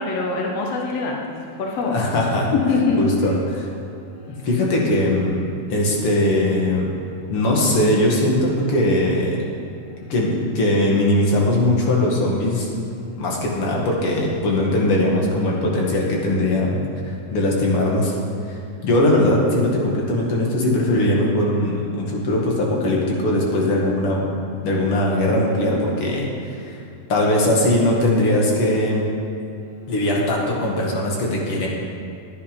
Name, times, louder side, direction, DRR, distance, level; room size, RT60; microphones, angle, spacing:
voice 1, 0.0-2.0 2.5-3.0, left 4 dB, 80° left, 0 dB, 1.4 m, -23 dB
voice 2, 1.9-2.5 3.0-3.7 4.3-5.4 5.7-6.9 7.3-9.4 10.1-12.7 13.2-16.8 17.3-18.1 18.5-18.6 18.8-24.2 24.6-26.3 27.1-29.1 29.9-31.7, left 1 dB, 45° left, -2 dB, 2.3 m, -20 dB
15.5 x 10.0 x 5.2 m, 2.5 s
omnidirectional pair, 4.5 m